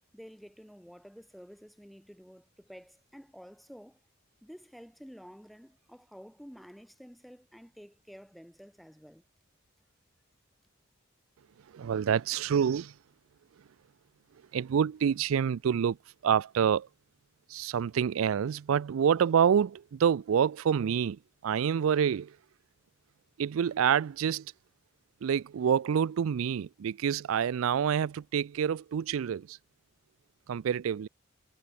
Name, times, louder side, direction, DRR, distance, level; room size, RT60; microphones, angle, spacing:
voice 1, 0.1-4.0 4.4-9.2, equal, ahead, 0.6 m, -51 dB
voice 2, 11.7-12.9 14.5-16.0 16.2-16.9 17.5-22.3 23.4-24.5 25.2-29.6 30.5-31.1, right 8 dB, 80° right, 0.4 m, -27 dB
head